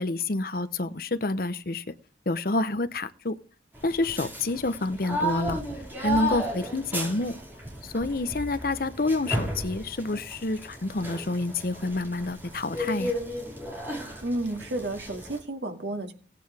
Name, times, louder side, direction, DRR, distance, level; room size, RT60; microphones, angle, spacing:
voice 1, 0.0-1.8 2.3-3.4 3.8-5.6 6.0-7.3 7.8-13.1, left 2 dB, 50° left, 13 dB, 0.8 m, -28 dB
sound 1, 3.7-15.4, equal, 10° right, 4.9 m, -34 dB
voice 2, 14.2-16.1, right 1 dB, 70° right, 5 dB, 2.2 m, -31 dB
17.5 x 9.1 x 3.5 m, 0.39 s
head